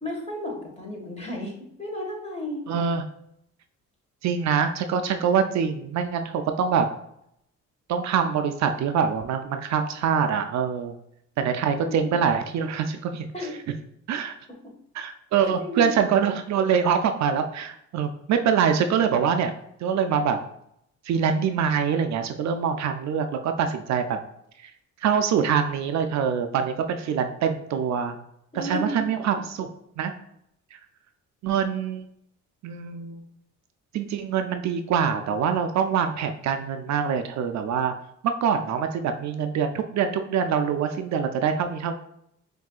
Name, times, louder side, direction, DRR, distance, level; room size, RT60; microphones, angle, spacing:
voice 1, 0.0-2.6 11.8-12.2 13.3-13.6 15.4-16.0 28.5-29.3, left 1 dB, 20° left, -1 dB, 1.5 m, -33 dB
voice 2, 2.7-3.0 4.2-6.9 7.9-11.0 11.4-13.3 14.1-14.3 14.9-19.5 19.8-20.4 21.0-24.2 24.6-24.7 25.0-28.2 28.5-29.7 30.0-30.2 30.7-30.8 31.4-32.1 32.6-33.3 33.9-37.9 38.2-41.9, right 7 dB, 65° right, 7 dB, 0.4 m, -24 dB
6.0 x 2.7 x 2.4 m, 0.75 s
cardioid pair, 90°, 30 cm